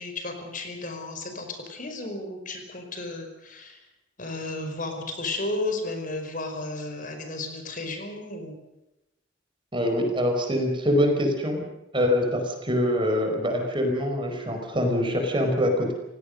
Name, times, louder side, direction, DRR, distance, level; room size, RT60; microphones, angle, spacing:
voice 1, 0.0-3.8 4.2-8.6, left 2 dB, 45° left, 5 dB, 5.0 m, -33 dB
voice 2, 9.7-11.6 11.9-15.9, equal, 25° right, 4 dB, 4.8 m, -24 dB
29.5 x 17.5 x 6.6 m, 0.93 s
head